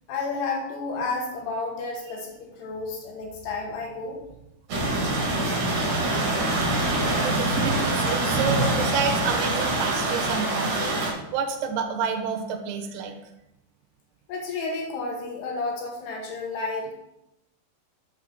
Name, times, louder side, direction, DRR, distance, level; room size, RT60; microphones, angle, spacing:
voice 1, 0.1-4.2 14.3-16.9, left 3 dB, 70° left, 1 dB, 2.8 m, -31 dB
sound 1, 4.7-11.1, right 2 dB, 50° right, 2.2 m, -24 dB
voice 2, 7.2-13.1, right 6 dB, 75° right, 3 dB, 2.5 m, -29 dB
6.9 x 4.8 x 6.1 m, 0.88 s
omnidirectional pair, 5.6 m